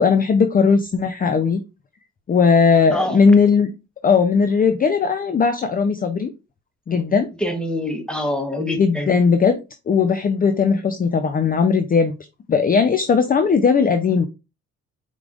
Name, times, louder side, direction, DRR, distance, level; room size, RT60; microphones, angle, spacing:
voice 1, 0.0-1.6 2.3-3.7 4.0-6.3 6.9-7.3 8.8-9.6 9.9-12.2 12.5-14.3, left 5 dB, 30° left, 0.5 m, -17 dB
voice 2, 7.4-9.2, left 1 dB, 5° left, 1.1 m, -25 dB
4.7 x 3.8 x 2.4 m
cardioid pair, 90°, 30 cm